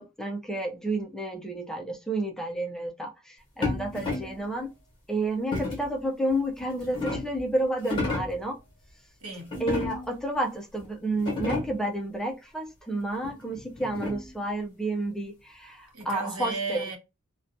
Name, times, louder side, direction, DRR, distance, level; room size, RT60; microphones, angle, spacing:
voice 1, 0.0-4.7 5.1-8.6 9.6-16.8, right 1 dB, 5° left, 0.3 m, -30 dB
sound 1, 3.6-4.4 5.5-5.9 6.6-7.4 7.8-8.4 9.5-10.2 10.8-10.9 11.1-11.9 13.2-14.4, left 3 dB, 20° left, 1.1 m, -32 dB
voice 2, 9.2-9.5 15.9-17.0, right 4 dB, 90° right, 0.9 m, -34 dB
2.5 x 2.1 x 2.5 m
head